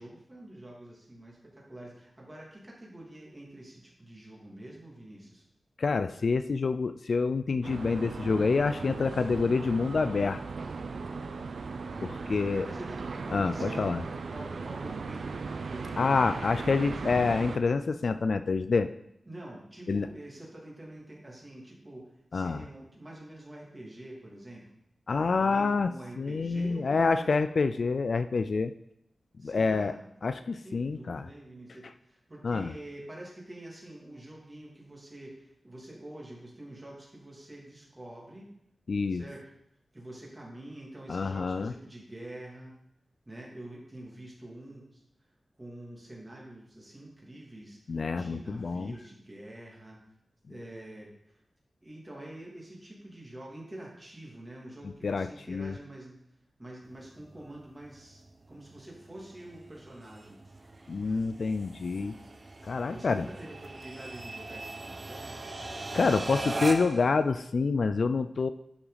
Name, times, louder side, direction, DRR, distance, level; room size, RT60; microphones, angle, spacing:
voice 1, 0.0-5.4 11.8-17.3 19.2-24.6 25.4-27.7 29.4-30.1 30.5-38.5 39.1-39.5 39.9-42.8 43.2-45.0 45.6-50.0 50.5-51.4 51.8-56.2 56.6-58.2 58.5-60.4 62.9-65.5, right 1 dB, 20° right, -3 dB, 2.6 m, -46 dB
voice 2, 5.8-10.4 12.0-12.7 13.3-14.0 16.0-18.9 19.9-20.1 22.3-22.6 25.1-25.9 26.2-28.7 29.4-29.9 30.2-31.3 32.4-32.7 38.9-39.2 41.1-41.7 47.9-48.9 55.0-55.7 60.9-62.2 62.6-63.3 65.9-68.5, left 4 dB, 60° left, 10 dB, 0.4 m, -27 dB
sound 1, 7.6-17.6, right 4 dB, 80° right, 0.6 m, -37 dB
sound 2, 56.9-67.1, right 2 dB, 35° right, 0.8 m, -40 dB
11.0 x 6.0 x 4.1 m, 0.78 s
wide cardioid pair, 115°, 0 cm